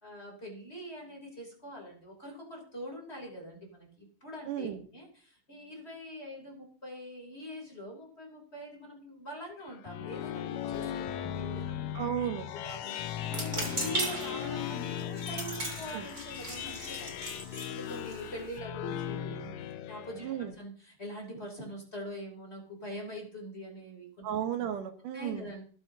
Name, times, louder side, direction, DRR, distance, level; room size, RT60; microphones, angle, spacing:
voice 1, 0.0-11.9 12.5-19.5 19.9-24.2 25.1-25.7, equal, 20° left, -1 dB, 3.2 m, -44 dB
voice 2, 4.5-4.8 11.9-12.5 15.9-16.1 20.2-20.5 24.2-25.5, right 10 dB, 85° right, 7 dB, 2.8 m, -34 dB
sound 1, 9.6-20.5, left 10 dB, 75° left, 1.9 m, -38 dB
sound 2, 13.2-18.6, right 2 dB, 25° right, 3.1 m, -38 dB
26.0 x 8.8 x 2.8 m, 0.44 s
omnidirectional pair, 3.6 m